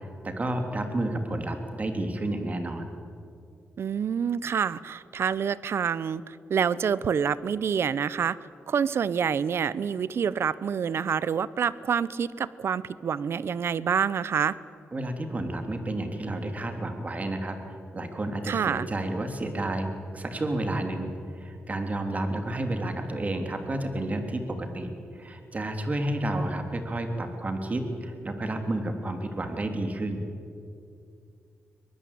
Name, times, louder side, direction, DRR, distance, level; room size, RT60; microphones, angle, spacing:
voice 1, 0.2-2.9 14.9-17.5 17.9-30.2, right 1 dB, 30° right, 5 dB, 3.3 m, -31 dB
voice 2, 3.8-8.4 8.7-14.6 18.5-18.9, right 7 dB, 65° right, 18 dB, 0.7 m, -27 dB
23.5 x 19.5 x 8.6 m, 2.4 s
cardioid pair, 85°, 5 cm